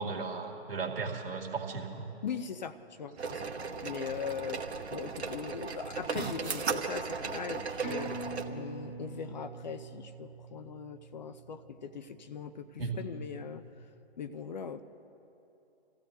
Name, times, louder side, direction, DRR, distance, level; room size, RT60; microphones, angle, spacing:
voice 1, 0.0-2.0 12.8-12.9, right 4 dB, 55° right, 0 dB, 2.0 m, -35 dB
voice 2, 2.2-3.5 3.8-13.6 14.2-14.8, left 6 dB, 45° left, 11 dB, 0.5 m, -40 dB
sound 1, 3.2-8.4, right 5 dB, 75° right, 1.1 m, -36 dB
sound 2, 7.8-12.8 13.1-13.2, right 3 dB, 60° left, 3.5 m, -44 dB
28.5 x 15.0 x 2.6 m, 2.9 s
figure-of-eight pair, 135°, 33 cm